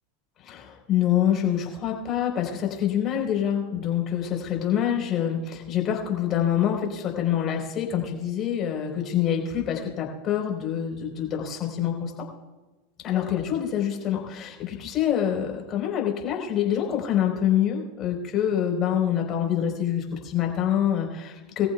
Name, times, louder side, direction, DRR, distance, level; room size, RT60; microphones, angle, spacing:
voice 1, 0.4-12.1 13.0-21.7, left 10 dB, 40° left, 2 dB, 4.2 m, -26 dB
22.5 x 14.5 x 2.3 m, 1.2 s
hypercardioid pair, 100°, 0 cm